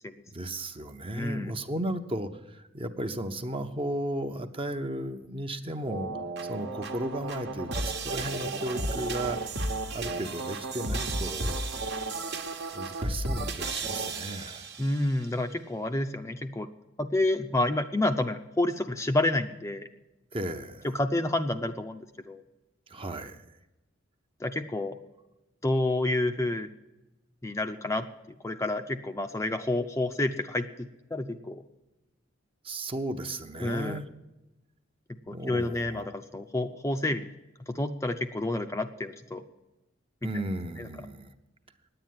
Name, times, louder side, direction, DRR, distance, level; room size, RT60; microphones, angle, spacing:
voice 1, 0.3-6.1 6.4-9.4 9.9-11.7 12.7-14.6 20.3-20.9 22.9-23.5 32.6-34.1 35.3-36.1 40.2-41.3, right 1 dB, 30° right, 7 dB, 0.8 m, -35 dB
voice 2, 1.2-1.5 14.8-16.7 17.0-19.9 20.9-22.4 24.4-25.0 25.6-26.7 27.4-28.1 28.4-31.6 33.6-34.0 35.3-37.3 37.7-39.4 40.8-40.9, left 2 dB, 15° left, 7 dB, 0.5 m, -29 dB
sound 1, 5.9-15.1, right 2 dB, 60° right, 1.2 m, -33 dB
10.0 x 8.9 x 9.5 m, 1.0 s
head